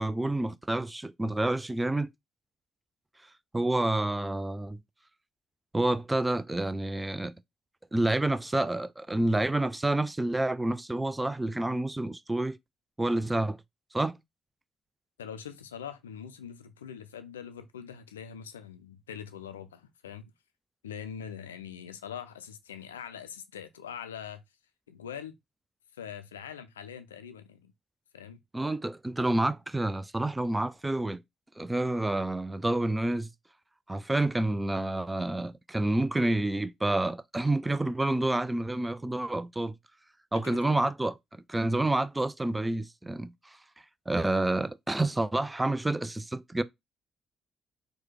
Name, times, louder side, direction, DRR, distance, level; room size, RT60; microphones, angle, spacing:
voice 1, 0.0-2.1 3.5-4.8 5.7-7.3 7.9-12.6 13.0-13.6 13.9-14.2 28.5-31.2 31.6-33.3 33.9-39.8 40.3-43.6 44.1-46.6, right 2 dB, 15° right, 0.4 m, -28 dB
voice 2, 15.2-20.3 20.8-24.4 24.9-25.4 25.9-27.7 28.1-28.4 40.3-40.8, left 8 dB, 80° left, 0.4 m, -43 dB
4.5 x 2.2 x 3.2 m
figure-of-eight pair, 45°, 0 cm